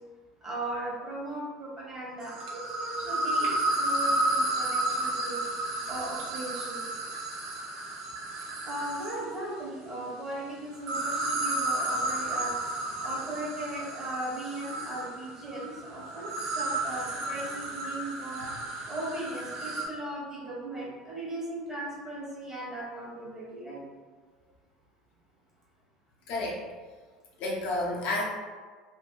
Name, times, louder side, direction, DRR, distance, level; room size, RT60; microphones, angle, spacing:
voice 1, 0.4-5.4 5.9-6.8 8.6-12.6 13.0-18.5 18.9-23.8, right 1 dB, 20° right, -6 dB, 1.1 m, -37 dB
sound 1, 2.2-9.3 10.7-19.9, right 2 dB, 60° right, 0.5 m, -32 dB
voice 2, 26.3-26.6 27.4-28.2, left 2 dB, 60° left, -3 dB, 0.5 m, -30 dB
2.5 x 2.1 x 2.2 m, 1.5 s
hypercardioid pair, 70°, 3 cm